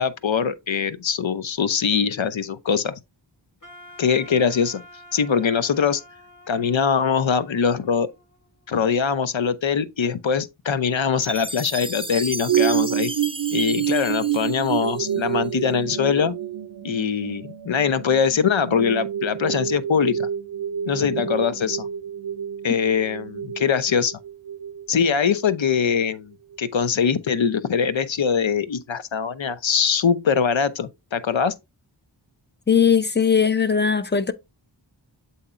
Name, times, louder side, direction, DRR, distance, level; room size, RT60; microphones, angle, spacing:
voice 1, 0.0-2.9 4.0-4.8 5.1-6.0 6.5-8.1 8.7-13.1 13.5-16.3 16.8-20.3 20.9-21.9 22.6-24.2 24.9-26.3 26.6-31.5, left 6 dB, 85° left, 0.8 m, -22 dB
Wind instrument woodwind instrument, 3.6-8.7, left 1 dB, 45° left, 1.5 m, -48 dB
Chime, 11.2-15.5, right 1 dB, 10° right, 0.6 m, -34 dB
sound 1, 12.5-26.0 26.5-26.6, right 10 dB, 65° right, 0.6 m, -28 dB
voice 2, 32.7-34.3, left 7 dB, 25° left, 0.7 m, -19 dB
7.8 x 2.8 x 4.9 m
wide cardioid pair, 60°, 45 cm